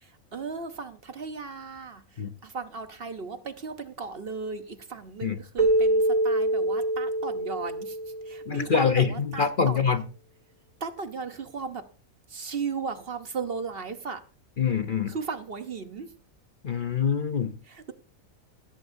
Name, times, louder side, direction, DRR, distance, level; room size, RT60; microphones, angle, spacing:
voice 1, 0.0-8.0 8.3-9.9 10.8-11.9 12.3-14.2 15.1-16.1 17.6-17.9, right 5 dB, 50° right, 1.0 m, -36 dB
Keyboard (musical), 5.6-8.8, right 1 dB, 70° right, 1.5 m, -25 dB
voice 2, 8.5-10.0 14.6-15.1 16.6-17.5, left 6 dB, 45° left, 0.8 m, -25 dB
16.5 x 15.0 x 2.7 m
omnidirectional pair, 1.4 m